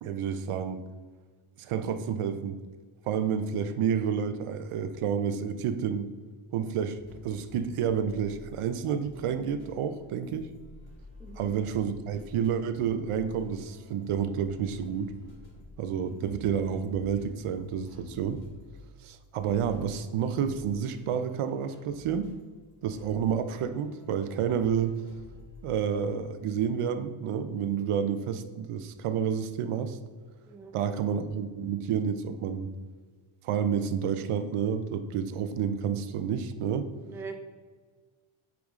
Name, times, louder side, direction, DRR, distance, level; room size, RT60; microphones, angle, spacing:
voice 1, 0.0-0.8 1.6-2.6 3.1-6.1 6.5-10.5 11.4-15.1 15.8-18.4 19.0-22.3 22.8-25.0 25.6-30.0 30.7-32.7 33.4-36.9, right 7 dB, 80° right, 10 dB, 0.7 m, -30 dB
sound 1, 7.0-8.7 9.0-25.7, left 2 dB, 50° left, 1.9 m, -51 dB
voice 2, 11.2-11.5 30.5-30.7 37.1-37.4, right 4 dB, 5° right, 5 dB, 0.4 m, -42 dB
7.3 x 4.8 x 3.6 m, 1.5 s
wide cardioid pair, 155°, 50 cm